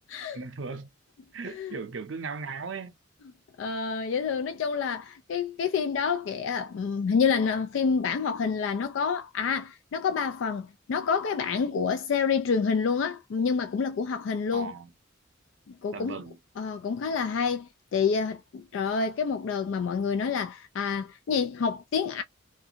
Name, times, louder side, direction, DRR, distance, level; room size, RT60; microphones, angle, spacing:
voice 1, 0.3-0.9 1.3-2.9 14.5-14.9 15.9-16.4, right 4 dB, 70° right, 0.5 m, -37 dB
voice 2, 3.6-14.7 15.8-16.2 16.6-22.2, left 6 dB, 75° left, 0.3 m, -28 dB
2.5 x 2.2 x 2.7 m
head